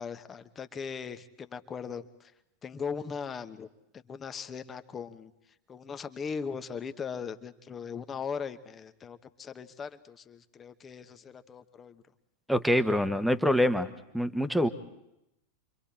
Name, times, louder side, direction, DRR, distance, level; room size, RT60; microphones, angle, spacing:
voice 1, 0.0-2.3 2.6-3.7 3.9-5.3 5.7-12.0, left 6 dB, 20° left, 10 dB, 1.2 m, -39 dB
voice 2, 12.5-13.9 14.1-14.7, equal, ahead, 8 dB, 1.3 m, -25 dB
29.5 x 24.5 x 4.4 m, 0.85 s
figure-of-eight pair, 90°, 0 cm